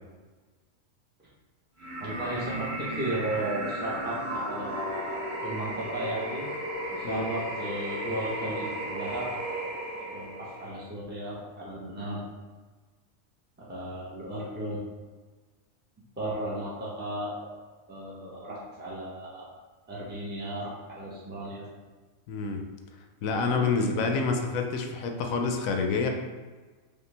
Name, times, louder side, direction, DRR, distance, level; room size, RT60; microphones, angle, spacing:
sound 1, 1.8-10.8, right 1 dB, 40° right, 1.4 m, -35 dB
voice 1, 2.0-6.5 6.9-9.3 10.1-12.2 13.6-14.8 16.2-17.4 17.9-19.5 19.9-21.6 23.5-24.3, right 1 dB, 10° right, -7 dB, 0.8 m, -35 dB
voice 2, 22.3-22.6 23.2-26.1, left 4 dB, 80° left, 4 dB, 1.0 m, -27 dB
5.0 x 2.5 x 3.3 m, 1.3 s
omnidirectional pair, 1.4 m